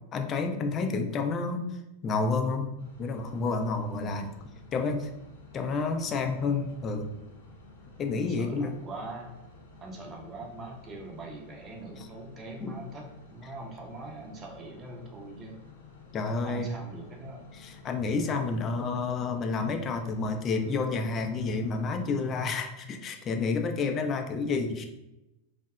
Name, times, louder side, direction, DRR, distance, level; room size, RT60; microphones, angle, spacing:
voice 1, 0.1-2.7 3.0-4.3 4.7-5.1 5.5-7.1 8.0-8.7 12.0-12.1 12.6-12.8 16.1-16.7 17.5-24.9, left 4 dB, 30° left, 5 dB, 0.3 m, -30 dB
sound 1, 2.8-22.3, left 3 dB, 65° left, 0.6 m, -52 dB
voice 2, 6.4-6.7 8.1-9.3 9.8-15.6 16.4-17.4, right 2 dB, 25° right, 1 dB, 0.5 m, -43 dB
2.6 x 2.0 x 2.3 m, 0.94 s
figure-of-eight pair, 90°, 0 cm